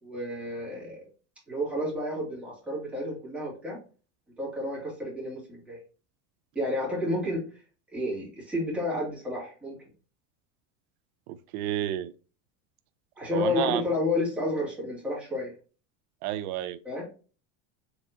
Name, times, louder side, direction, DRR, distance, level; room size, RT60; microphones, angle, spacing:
voice 1, 0.0-1.1 1.5-3.8 4.4-5.8 6.5-7.4 7.9-9.8 13.2-15.5 16.8-17.0, left 1 dB, 5° right, 2.3 m, -31 dB
voice 2, 11.5-12.1 13.3-13.8 16.2-16.8, right 12 dB, 85° right, 0.5 m, -30 dB
4.7 x 3.5 x 2.7 m
cardioid pair, 155°, 43 cm